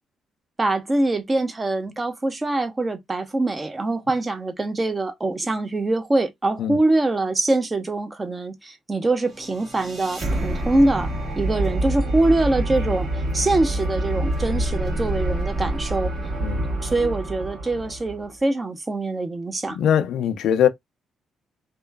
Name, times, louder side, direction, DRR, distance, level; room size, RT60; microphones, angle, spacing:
voice 1, 0.6-11.1 11.4-16.1 16.8-19.8, right 2 dB, 25° right, 0.7 m, -23 dB
sound 1, 9.2-18.3, right 1 dB, 40° right, 1.4 m, -27 dB
voice 2, 16.4-16.7 19.7-20.7, left 9 dB, 75° left, 0.4 m, -21 dB
2.9 x 2.1 x 2.2 m
cardioid pair, 90°, 0 cm